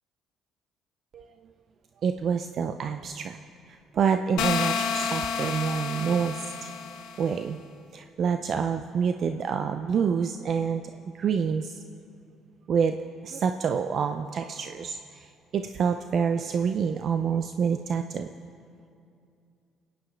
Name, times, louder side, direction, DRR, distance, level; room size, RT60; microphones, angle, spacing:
voice 1, 2.0-3.4 3.9-6.4 7.2-7.6 7.9-10.8 11.1-11.7 12.7-13.0 13.2-15.0 15.5-18.3, right 6 dB, 55° right, 7 dB, 0.5 m, -27 dB
sound 1, 4.4-7.3, left 6 dB, 75° left, 0.9 m, -30 dB
28.5 x 9.5 x 3.3 m, 2.5 s
supercardioid pair, 75°, 0 cm